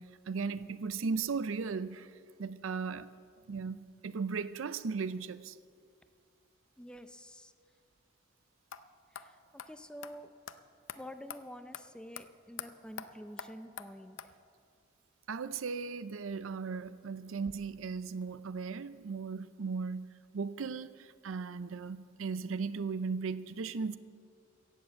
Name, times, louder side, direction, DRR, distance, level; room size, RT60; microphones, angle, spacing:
voice 1, 0.0-2.1 2.4-3.1 3.5-5.6 15.3-20.1 20.3-24.0, right 5 dB, 90° right, 0.5 m, -37 dB
voice 2, 6.8-7.5 9.1-9.4 9.7-10.3 11.0-14.2, equal, 5° left, 0.5 m, -48 dB
sound 1, 8.7-8.8 9.1-9.3 9.6-9.7 10.0-10.1 10.5-10.6 10.9-11.0 11.3-11.4 11.7-11.8 12.1-12.2 12.6-12.7 13.0-13.1 13.4-13.5 13.8-13.9 14.2-14.3, left 8 dB, 80° left, 0.6 m, -43 dB
17.0 x 7.4 x 7.5 m
head